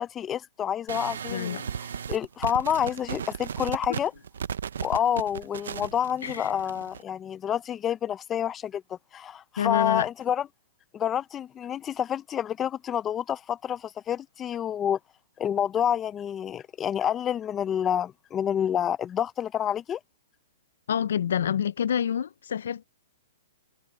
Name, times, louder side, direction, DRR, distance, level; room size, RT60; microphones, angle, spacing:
voice 1, 0.0-4.1 4.8-10.5 10.9-15.0 15.4-20.0, left 9 dB, 15° left, 0.5 m, -28 dB
sound 1, 0.9-7.0, right 7 dB, 80° right, 0.7 m, -35 dB
voice 2, 1.3-1.7 6.2-6.5 9.6-10.1 20.9-22.9, left 8 dB, 75° left, 0.4 m, -27 dB
hypercardioid pair, 150°, 0 cm